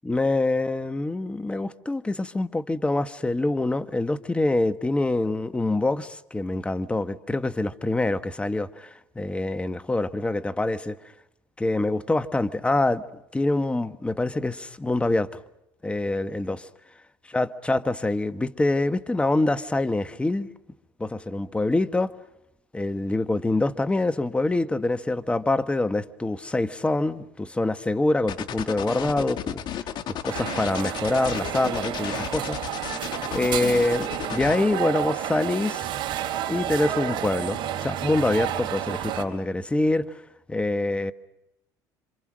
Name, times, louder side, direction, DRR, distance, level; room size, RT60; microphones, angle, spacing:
voice 1, 0.0-8.9 9.1-11.0 11.6-13.0 13.3-15.3 15.8-16.6 17.3-20.5 21.0-22.1 22.7-29.6 30.1-32.6 32.9-35.8 36.5-40.2 40.5-41.1, left 2 dB, 10° left, 1.3 m, -25 dB
sound 1, 28.3-34.6, left 9 dB, 55° left, 1.8 m, -33 dB
sound 2, 30.3-39.2, right 11 dB, 60° right, 3.8 m, -31 dB
28.0 x 26.5 x 6.3 m
supercardioid pair, 90°, 9 cm